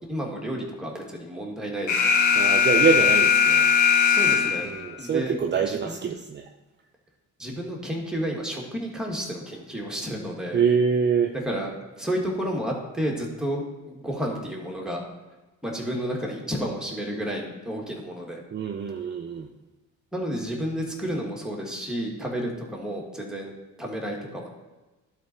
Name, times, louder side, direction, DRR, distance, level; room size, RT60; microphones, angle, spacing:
voice 1, 0.0-2.2 4.1-4.7 5.0-5.4 5.7-6.1 7.4-10.6 11.5-11.7 12.0-15.0 15.6-18.4 20.1-23.5 23.8-24.5, equal, ahead, -1 dB, 1.9 m, -31 dB
Alarm, 1.9-4.9, left 6 dB, 80° left, 0.9 m, -19 dB
voice 2, 2.3-3.7 4.6-6.5 10.5-11.3 18.5-19.5, right 6 dB, 35° right, 4 dB, 0.6 m, -25 dB
11.5 x 4.0 x 4.5 m, 1.1 s
cardioid pair, 90°, 30 cm